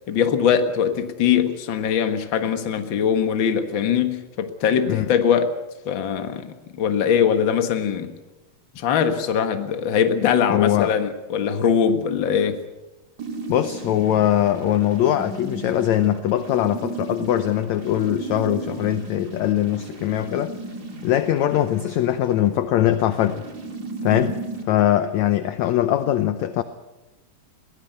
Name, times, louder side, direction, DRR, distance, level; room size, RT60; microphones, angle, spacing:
voice 1, 0.1-5.5 5.8-8.1 8.7-12.6, left 7 dB, 50° left, 1.6 m, -21 dB
voice 2, 10.5-10.9 13.5-20.5 21.0-23.5 24.0-24.4 24.7-26.6, left 12 dB, 75° left, 1.7 m, -21 dB
sound 1, 13.2-24.6, right 3 dB, 30° right, 2.6 m, -35 dB
22.5 x 18.0 x 8.1 m
omnidirectional pair, 4.2 m